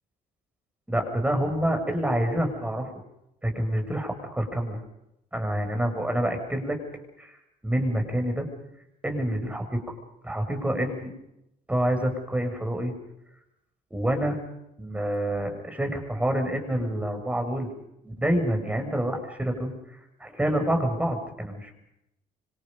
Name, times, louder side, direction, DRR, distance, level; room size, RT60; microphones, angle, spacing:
voice 1, 0.9-2.9 3.4-4.8 5.3-6.8 7.2-7.4 7.6-8.5 9.0-9.9 10.2-11.1 11.7-12.9 13.9-14.4 14.8-17.7 18.0-21.7, right 1 dB, 10° right, 4 dB, 6.7 m, -27 dB
26.5 x 26.0 x 5.5 m, 0.83 s
cardioid pair, 110°, 17 cm